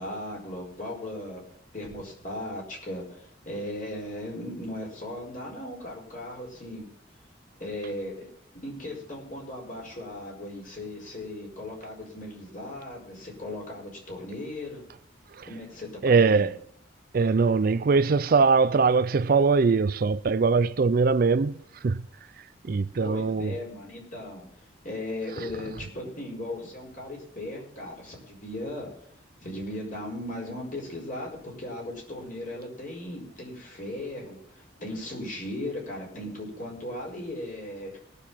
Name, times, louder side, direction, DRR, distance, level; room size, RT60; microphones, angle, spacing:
voice 1, 0.0-1.4 1.7-6.9 7.6-8.3 8.6-14.8 15.5-16.5 23.0-28.9 29.4-38.0, left 1 dB, 45° left, 4.9 m, -37 dB
voice 2, 16.0-16.6 17.1-21.6 21.8-22.0 22.6-23.5, right 4 dB, 50° right, 0.4 m, -22 dB
19.0 x 6.9 x 5.6 m
head